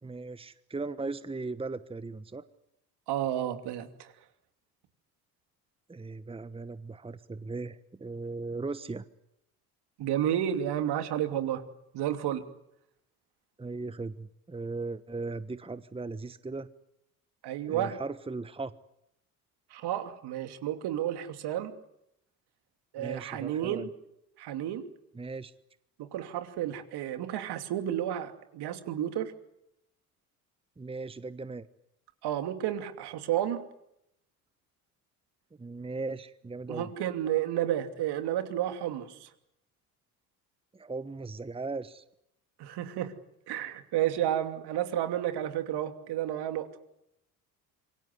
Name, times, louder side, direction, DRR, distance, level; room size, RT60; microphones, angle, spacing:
voice 1, 0.0-2.4 5.9-9.0 13.6-16.7 17.7-18.7 23.0-23.9 25.1-25.5 30.8-31.7 35.6-36.9 40.7-42.0, right 3 dB, 10° right, 14 dB, 1.2 m, -38 dB
voice 2, 3.1-4.1 10.0-11.6 11.9-12.4 17.4-18.0 19.7-21.7 22.9-23.9 24.4-24.9 26.0-29.3 32.2-33.6 36.7-39.3 42.6-43.1 43.5-46.7, right 11 dB, 60° right, 8 dB, 2.8 m, -31 dB
27.0 x 23.5 x 8.1 m, 0.82 s
hypercardioid pair, 60°, 45 cm